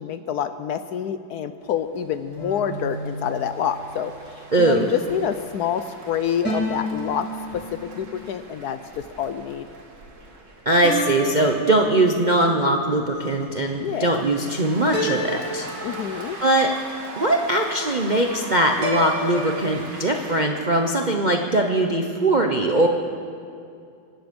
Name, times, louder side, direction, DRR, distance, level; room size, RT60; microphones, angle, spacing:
voice 1, 0.0-7.3 7.8-9.7 13.8-14.2 15.8-16.4, left 8 dB, 70° left, 10 dB, 1.0 m, -27 dB
sound 1, 1.6-20.4, right 2 dB, 70° right, 2.7 m, -42 dB
sound 2, 2.4-4.0 6.4-8.1 10.8-12.3 14.9-16.5 18.8-19.7, equal, 5° left, 5.1 m, -31 dB
voice 2, 4.5-4.9 10.7-15.7 16.4-16.7 17.2-22.9, right 1 dB, 45° right, 2 dB, 0.6 m, -21 dB
25.0 x 10.5 x 5.3 m, 2.4 s
omnidirectional pair, 2.0 m